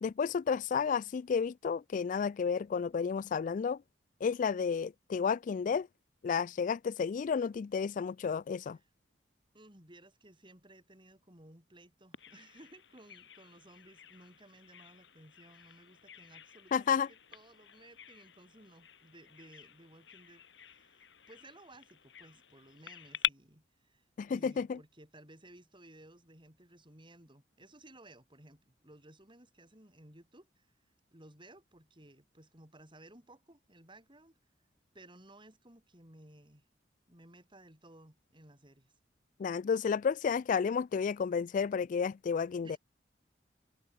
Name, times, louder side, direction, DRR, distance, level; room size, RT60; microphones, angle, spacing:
voice 1, 0.0-3.8 4.2-5.9 6.2-8.8 16.7-17.1 24.2-24.8 39.4-42.8, left 6 dB, 45° left, 0.3 m, -31 dB
voice 2, 9.5-30.7 31.1-34.4 34.9-36.7 37.1-38.9 42.6-42.8, right 1 dB, 30° right, 6.9 m, -58 dB
Bird vocalization bird call bird song, 12.1-23.3, left 10 dB, 90° left, 2.4 m, -45 dB
head